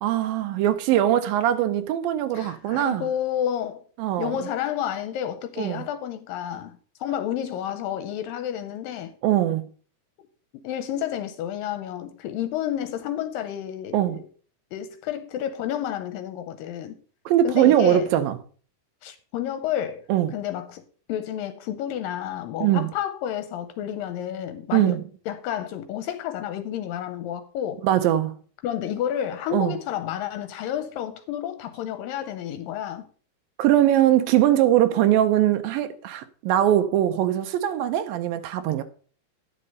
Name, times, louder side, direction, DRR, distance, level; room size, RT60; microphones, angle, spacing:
voice 1, 0.0-3.0 4.0-4.4 5.6-5.8 9.2-9.7 13.9-14.2 17.3-18.4 20.1-20.3 22.6-22.9 24.7-25.0 27.8-28.4 29.5-29.8 33.6-38.8, right 12 dB, 80° right, 2.4 m, -21 dB
voice 2, 2.3-3.8 4.2-9.1 10.6-14.2 14.7-17.0 17.4-18.1 19.0-20.1 20.3-20.8 21.1-25.0 25.3-27.9 28.6-33.1, left 10 dB, 85° left, 2.3 m, -30 dB
9.8 x 6.4 x 5.3 m
omnidirectional pair, 4.2 m